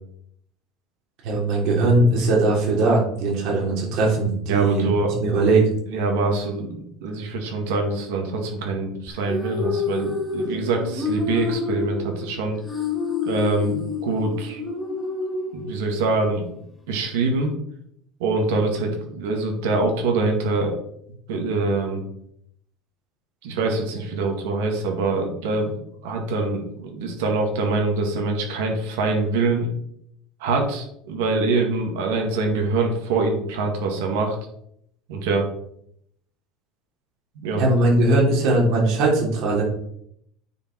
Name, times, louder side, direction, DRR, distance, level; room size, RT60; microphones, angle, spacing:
voice 1, 1.2-5.7 37.6-39.6, right 2 dB, 60° right, -2 dB, 3.3 m, -20 dB
voice 2, 4.5-5.1 5.9-12.6 13.3-14.6 15.5-16.4 16.9-17.5 18.2-20.8 21.3-22.1 23.4-25.7 26.0-29.7 30.4-34.4 35.1-35.5 37.4-37.6, right 3 dB, 85° right, 1 dB, 2.1 m, -24 dB
sound 1, 9.1-16.1, left 3 dB, 10° left, 2.0 m, -28 dB
9.4 x 4.9 x 4.6 m, 0.72 s
cardioid pair, 140°, 0 cm